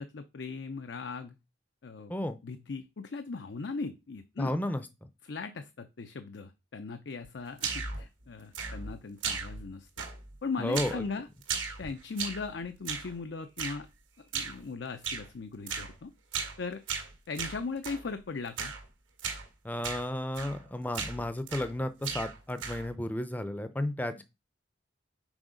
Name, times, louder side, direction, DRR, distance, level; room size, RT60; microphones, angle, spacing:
voice 1, 0.0-1.4 1.8-2.1 2.4-4.5 5.2-9.9 10.4-11.3 11.8-13.9 14.2-16.1 16.6-16.8 17.3-18.7, left 4 dB, 65° left, 9 dB, 0.5 m, -38 dB
voice 2, 4.4-4.9 10.6-11.0 19.6-24.2, left 1 dB, 10° left, 11 dB, 0.6 m, -33 dB
sound 1, 7.6-8.0 8.5-9.0 9.2-9.7 10.0-10.4 10.7-11.0 11.4-12.5 12.9-13.1 13.6-13.8 14.3-14.6 15.0-15.3 15.7-15.9 16.3-16.6 16.9-18.0 18.6-18.8 19.2-19.5 19.8-20.1 20.4-20.6 20.9-21.8 22.0-22.9, right 6 dB, 85° right, 1.9 m, -36 dB
6.2 x 4.7 x 5.0 m, 0.26 s
head